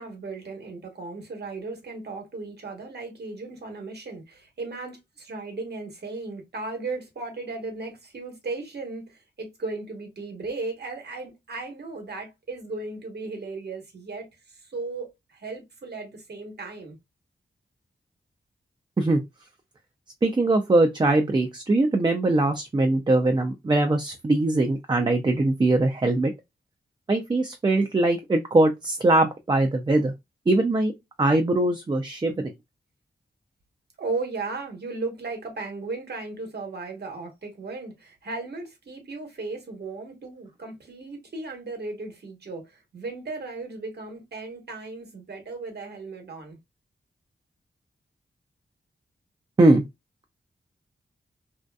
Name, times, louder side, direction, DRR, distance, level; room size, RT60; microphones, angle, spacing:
voice 1, 0.0-17.0 34.0-46.6, right 3 dB, 65° right, 1.1 m, -36 dB
voice 2, 20.2-26.3 27.1-30.1 30.5-30.9 31.2-32.5 49.6-49.8, right 2 dB, 25° right, 0.4 m, -21 dB
2.6 x 2.4 x 2.2 m
cardioid pair, 70°, 19 cm